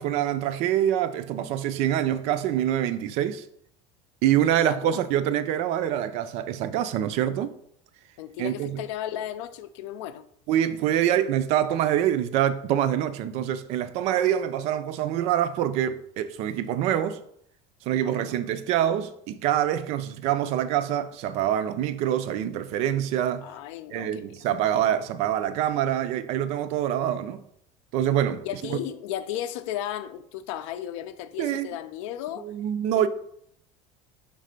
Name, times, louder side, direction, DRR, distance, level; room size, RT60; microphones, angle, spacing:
voice 1, 0.0-3.4 4.2-7.5 8.4-8.8 10.5-17.2 17.9-23.5 23.9-27.4 27.9-28.8 31.4-31.7 32.4-33.1, right 11 dB, 45° right, 0.4 m, -25 dB
voice 2, 4.6-5.0 8.2-10.2 18.0-18.4 23.4-24.3 28.4-32.5 33.0-33.1, left 11 dB, 75° left, 0.5 m, -35 dB
5.7 x 3.2 x 5.2 m
cardioid pair, 180°, 16 cm